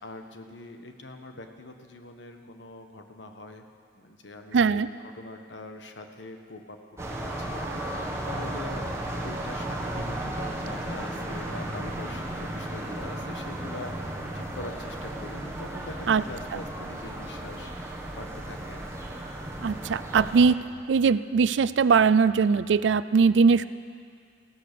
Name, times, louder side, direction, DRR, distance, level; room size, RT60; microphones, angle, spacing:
voice 1, 0.0-3.6 3.9-6.8 7.1-19.1, left 2 dB, 80° left, 5 dB, 1.3 m, -43 dB
voice 2, 4.5-4.9 16.1-16.2 19.6-20.6 20.9-23.7, right 5 dB, 75° right, 15 dB, 0.4 m, -20 dB
sound 1, 7.0-20.5, right 1 dB, 15° right, 1.7 m, -34 dB
16.0 x 12.5 x 6.8 m, 2.3 s
head